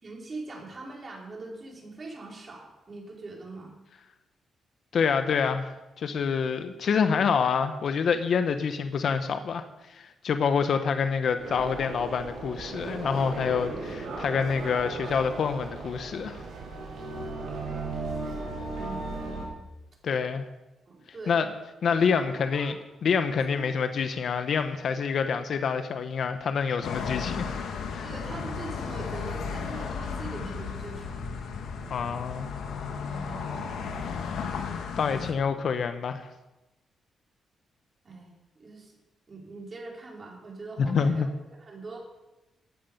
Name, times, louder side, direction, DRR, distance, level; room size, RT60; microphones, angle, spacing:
voice 1, 0.0-3.8 18.7-19.5 20.9-21.4 22.3-22.7 23.5-23.7 28.0-31.4 33.1-33.6 35.0-35.2 38.0-38.9 39.3-42.0, right 3 dB, 40° right, -2 dB, 4.7 m, -42 dB
voice 2, 4.9-16.4 20.0-20.4 21.3-21.5 21.8-22.7 23.0-27.5 27.9-28.1 31.9-32.5 35.0-36.3 40.8-41.3, left 6 dB, 65° left, 9 dB, 0.9 m, -27 dB
sound 1, 11.4-19.5, right 3 dB, 85° right, 4.2 m, -36 dB
sound 2, 26.8-35.3, left 5 dB, 80° left, 1.6 m, -34 dB
14.0 x 9.1 x 5.4 m, 1.0 s
cardioid pair, 75°, 0 cm